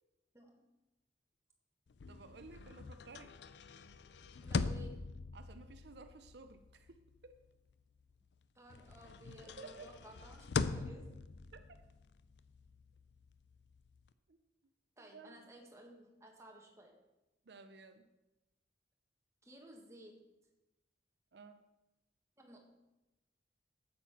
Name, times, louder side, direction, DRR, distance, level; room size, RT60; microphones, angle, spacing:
sound 1, 1.9-8.4 8.7-14.1, left 4 dB, 75° left, 0.5 m, -43 dB
voice 1, 2.1-3.3 5.3-7.4 9.4-9.9 11.5-11.8 14.3-14.4 15.0-15.5 17.5-18.1 21.3-21.6, right 3 dB, 70° right, 8 dB, 0.6 m, -55 dB
voice 2, 4.4-5.1 8.5-11.2 15.0-16.9 19.4-20.2 22.4-22.6, right 1 dB, 15° right, 1 dB, 1.5 m, -56 dB
8.4 x 7.7 x 5.7 m, 1.0 s
head